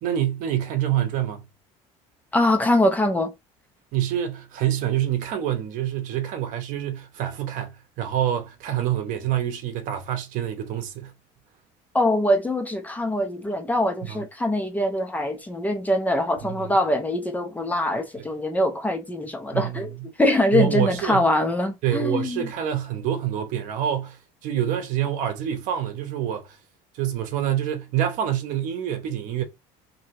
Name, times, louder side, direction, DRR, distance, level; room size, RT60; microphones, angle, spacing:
voice 1, 0.0-1.5 3.9-11.1 14.1-14.2 16.4-16.6 18.2-18.3 19.5-19.8 20.5-21.2 21.8-26.6 26.9-29.4, right 11 dB, 60° right, 0.8 m, -26 dB
voice 2, 2.3-3.3 11.9-19.9 20.2-22.5, left 1 dB, 10° left, 0.5 m, -23 dB
2.8 x 2.7 x 2.7 m
cardioid pair, 135°, 15 cm